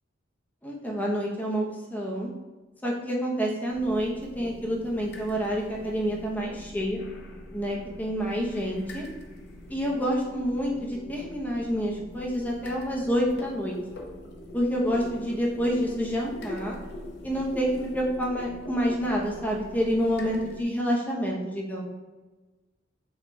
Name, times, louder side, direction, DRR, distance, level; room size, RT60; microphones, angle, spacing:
voice 1, 0.6-1.7 1.9-2.3 2.8-7.0 7.5-9.1 9.7-13.8 14.5-16.8 17.2-21.9, equal, 10° left, -2 dB, 0.6 m, -28 dB
sound 1, 3.7-20.6, left 1 dB, 60° left, 0.6 m, -43 dB
4.3 x 2.2 x 4.1 m, 1.2 s
head